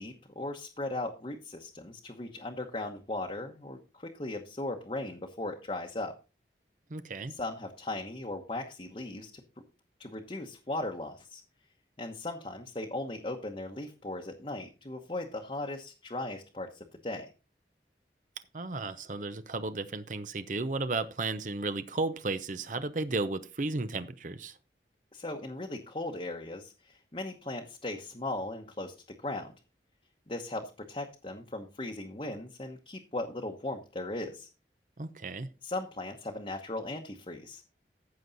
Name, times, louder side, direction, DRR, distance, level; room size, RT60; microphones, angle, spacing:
voice 1, 0.0-6.1 7.3-9.3 10.0-11.4 12.0-17.3 25.1-29.5 30.3-34.5 35.6-37.6, left 2 dB, 30° left, 2 dB, 1.0 m, -38 dB
voice 2, 6.9-7.3 18.5-24.6 35.0-35.5, right 3 dB, 45° right, 12 dB, 0.7 m, -34 dB
14.5 x 6.2 x 4.0 m, 0.32 s
head